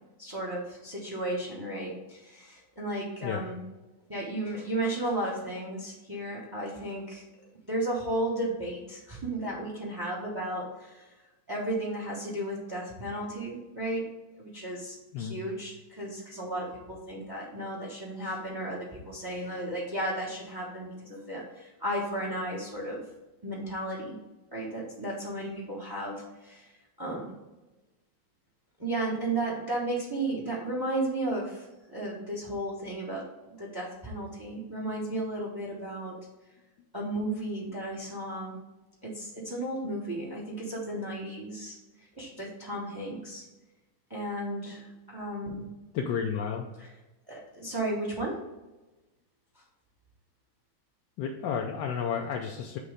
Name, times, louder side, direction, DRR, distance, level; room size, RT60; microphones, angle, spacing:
voice 1, 0.2-3.6 4.1-7.2 7.7-11.0 11.5-14.0 14.4-23.0 23.4-24.2 24.5-26.7 27.0-27.3 28.8-33.3 33.6-36.1 36.9-38.6 39.0-41.8 42.1-43.4 44.1-45.7 47.3-48.4, right 1 dB, 15° right, -3 dB, 0.7 m, -34 dB
voice 2, 45.9-46.7 51.2-52.8, left 7 dB, 70° left, 1 dB, 1.2 m, -31 dB
6.7 x 3.1 x 4.9 m, 1.1 s
omnidirectional pair, 2.3 m